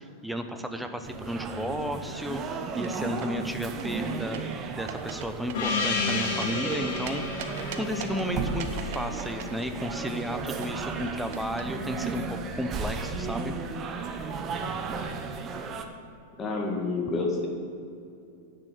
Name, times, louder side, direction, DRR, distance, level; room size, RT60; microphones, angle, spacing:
voice 1, 0.0-4.4 4.8-7.2 7.8-13.5, equal, ahead, 6 dB, 0.7 m, -33 dB
sound 1, 1.0-15.9, right 4 dB, 25° right, 0.9 m, -34 dB
sound 2, 2.7-3.4 3.8-4.6 4.9-5.2 5.5-7.1 7.4-8.2 8.6-11.6, right 10 dB, 60° right, 1.1 m, -40 dB
Gong, 5.5-9.9, left 4 dB, 60° left, 2.3 m, -32 dB
voice 2, 16.4-17.5, left 3 dB, 20° left, 0 dB, 2.0 m, -28 dB
10.5 x 6.5 x 8.5 m, 2.5 s
supercardioid pair, 150°, 0 cm